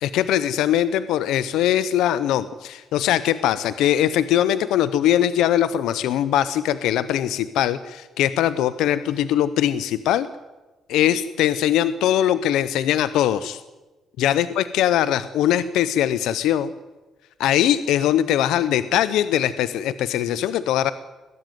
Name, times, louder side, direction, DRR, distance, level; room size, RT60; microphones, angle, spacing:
voice 1, 0.0-10.3 10.9-13.6 14.2-16.7 17.4-20.9, left 11 dB, 85° left, 14 dB, 0.7 m, -21 dB
20.5 x 14.5 x 9.3 m, 1.2 s
cardioid pair, 105°, 0 cm